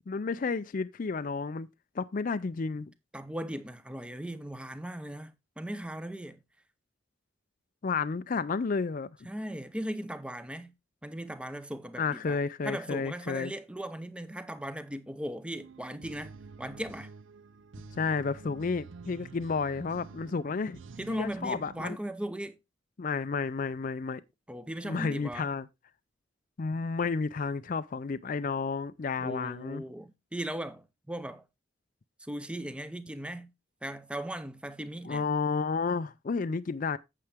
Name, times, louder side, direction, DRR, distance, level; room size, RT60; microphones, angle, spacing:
voice 1, 0.1-1.7 2.0-2.9 7.8-9.3 12.0-13.5 18.0-20.8 21.1-22.0 23.0-24.2 24.8-25.7 26.6-29.8 35.0-37.0, left 4 dB, 40° left, 0.4 m, -31 dB
voice 2, 3.1-6.4 9.2-10.7 11.0-17.1 21.0-22.6 24.5-25.5 29.2-31.4 32.2-33.5 33.8-35.3, right 1 dB, 5° right, 0.6 m, -38 dB
sound 1, 15.6-21.9, right 4 dB, 70° right, 0.5 m, -49 dB
8.7 x 7.7 x 3.4 m
head